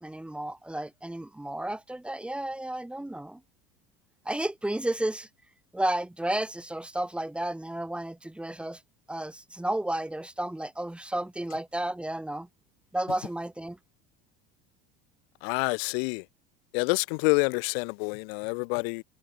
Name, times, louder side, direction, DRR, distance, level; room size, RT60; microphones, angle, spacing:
voice 1, 0.0-3.4 4.2-5.3 5.7-8.8 9.1-12.5 12.9-13.8, right 1 dB, 5° right, 2.6 m, -32 dB
voice 2, 15.4-16.2 16.7-19.0, left 32 dB, 80° left, 1.0 m, -27 dB
cardioid pair, 165°, 29 cm